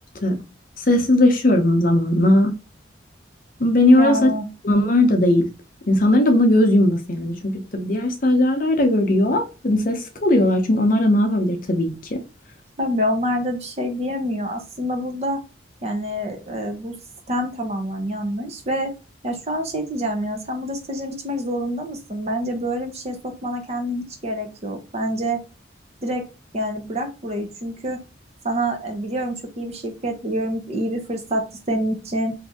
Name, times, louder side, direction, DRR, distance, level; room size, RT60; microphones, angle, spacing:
voice 1, 0.9-2.5 3.6-4.3 4.6-5.4 5.9-12.2, left 1 dB, 45° left, 0.6 m, -18 dB
voice 2, 4.0-4.5 12.8-15.4 15.8-16.9 17.3-18.9 19.2-25.4 26.0-26.2 26.5-28.0 28.4-32.3, equal, 35° right, 0.6 m, -26 dB
2.7 x 2.6 x 3.4 m
head